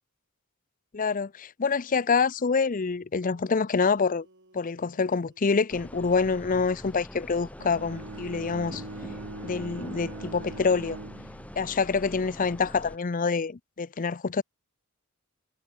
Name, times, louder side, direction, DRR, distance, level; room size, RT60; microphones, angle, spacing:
voice 1, 0.9-4.3 4.5-8.8 9.4-11.0 11.6-14.4, left 5 dB, 35° left, 0.5 m, -26 dB
sound 1, 2.9-3.0 3.2-7.4 8.6-12.6, right 1 dB, 55° right, 5.9 m, -61 dB
sound 2, 5.7-13.0, equal, 5° left, 1.7 m, -44 dB
Bowed string instrument, 7.6-11.8, right 2 dB, 85° right, 2.1 m, -41 dB
head